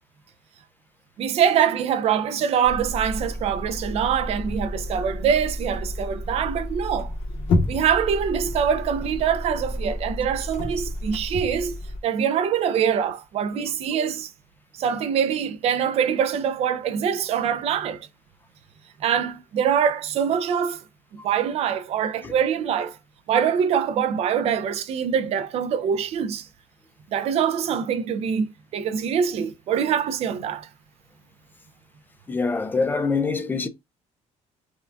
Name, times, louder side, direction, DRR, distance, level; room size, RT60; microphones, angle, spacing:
voice 1, 1.2-14.3 14.7-18.1 19.0-20.8 21.2-23.0 23.3-26.5 27.1-30.7, right 8 dB, 55° right, 0.4 m, -24 dB
sound 1, 2.6-12.0, left 1 dB, 60° left, 0.9 m, -30 dB
voice 2, 32.3-33.7, left 4 dB, 15° left, 0.4 m, -25 dB
3.6 x 2.2 x 2.5 m
cardioid pair, 150°, 13 cm